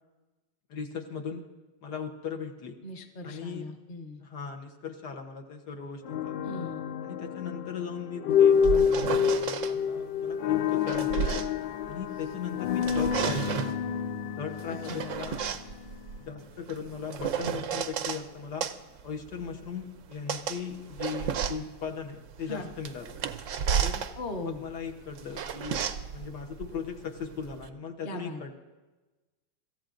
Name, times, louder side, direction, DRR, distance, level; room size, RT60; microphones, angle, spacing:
voice 1, 0.7-1.5 1.8-2.8 3.2-3.7 4.2-6.4 7.0-11.5 11.9-13.7 14.4-15.5 16.2-18.7 19.0-23.2 23.8-24.1 24.4-25.8 26.1-28.5, left 6 dB, 65° left, 2 dB, 1.6 m, -38 dB
voice 2, 2.8-4.2 6.4-6.8 14.7-15.0 22.5-22.7 24.2-24.6 28.0-28.5, left 1 dB, 35° left, 4 dB, 1.1 m, -39 dB
sound 1, 6.0-16.1, left 7 dB, 85° left, 1.4 m, -28 dB
sound 2, 8.3-9.7 10.5-12.3 12.7-13.8 14.6-18.2 18.6-27.7, right 8 dB, 70° right, 0.7 m, -33 dB
26.0 x 14.0 x 2.6 m, 1.2 s
omnidirectional pair, 2.0 m